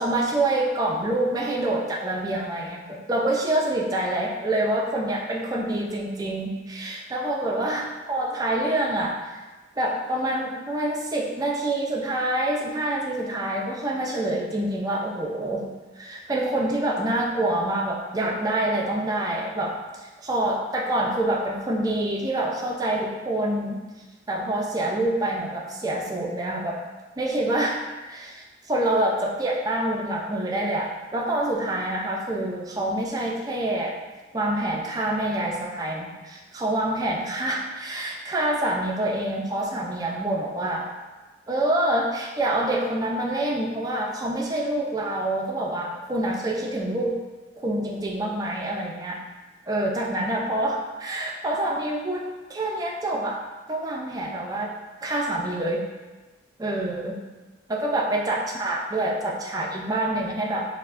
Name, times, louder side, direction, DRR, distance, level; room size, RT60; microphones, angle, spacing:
voice 1, 0.0-9.3 9.8-15.7 16.0-23.8 24.3-26.8 27.2-34.0 34.3-40.9 41.5-47.2 47.6-49.2 49.7-53.4 53.7-54.7 55.0-55.8 56.6-57.2 57.7-60.7, right 1 dB, 20° right, -2 dB, 0.3 m, -26 dB
4.5 x 2.0 x 2.5 m, 1.2 s
head